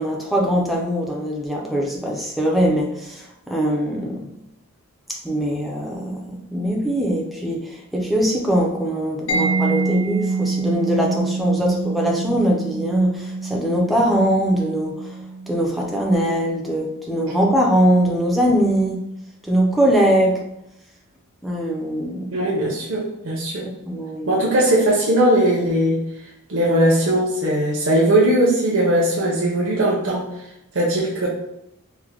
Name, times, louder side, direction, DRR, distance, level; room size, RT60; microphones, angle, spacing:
voice 1, 0.0-4.3 5.2-15.2 15.5-19.1 19.4-20.4 21.4-22.4 23.9-24.4, equal, ahead, -2 dB, 0.4 m, -21 dB
Mallet percussion, 9.3-16.8, right 3 dB, 75° left, 0.7 m, -26 dB
voice 2, 22.3-23.6 24.3-26.0 26.5-30.3 30.7-31.3, right 1 dB, 60° right, -5 dB, 0.6 m, -19 dB
3.2 x 2.1 x 3.6 m, 0.85 s
head